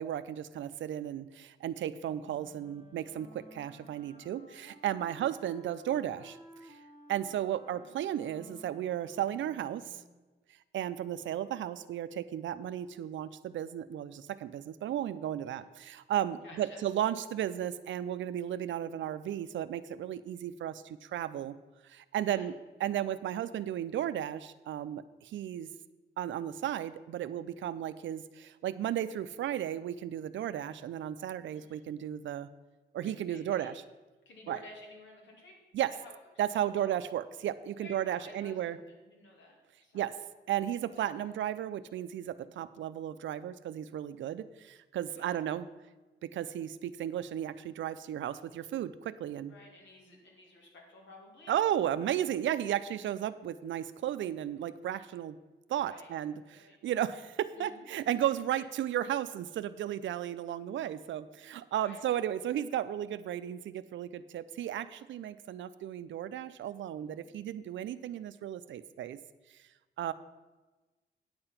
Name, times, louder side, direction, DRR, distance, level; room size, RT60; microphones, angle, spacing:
voice 1, 0.0-6.4 6.6-6.8 7.1-10.0 10.7-21.6 21.8-22.5 22.8-25.7 26.2-32.5 32.9-33.8 34.5-34.6 35.7-35.9 36.4-38.8 39.9-40.1 40.5-45.7 46.2-49.5 51.5-55.4 55.7-69.2 70.0-70.1, right 11 dB, 90° right, 13 dB, 0.5 m, -34 dB
Wind instrument woodwind instrument, 2.1-10.2, equal, 40° left, 1.4 m, -56 dB
voice 2, 16.4-16.9 22.2-22.5 22.8-22.9 31.5-31.9 33.0-33.7 34.2-35.6 36.0-36.1 36.5-36.8 37.8-40.1 41.2-41.3 45.2-45.4 49.5-51.8 55.7-56.1 56.5-56.8 57.6-57.9 58.5-58.7 61.8-62.0, left 2 dB, 80° left, -1 dB, 2.6 m, -53 dB
9.6 x 6.9 x 5.7 m, 1.2 s
cardioid pair, 100°, 19 cm